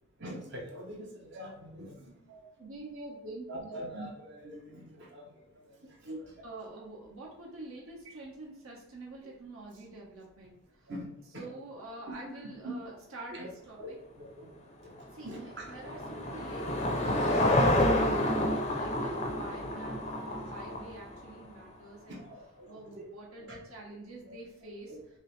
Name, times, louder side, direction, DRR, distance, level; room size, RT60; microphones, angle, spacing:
voice 1, 0.2-2.2 3.5-6.1 10.9-11.1 11.3-11.5 12.6-12.7 13.3-13.5 13.8-14.5 14.8-14.9 15.2-15.7 17.1-17.2 19.5-19.6 20.2-20.5 22.1-23.0 23.4-23.6 24.2-24.4 24.9-25.0, right 1 dB, 55° right, -1 dB, 0.8 m, -44 dB
voice 2, 2.3-3.8 5.8-10.5 11.4-14.0 15.1-22.2 22.7-25.0, right 2 dB, 75° right, -2 dB, 1.1 m, -47 dB
Car passing by / Engine, 14.9-21.4, left 1 dB, 30° left, 0.5 m, -29 dB
5.3 x 2.0 x 3.2 m, 0.82 s
head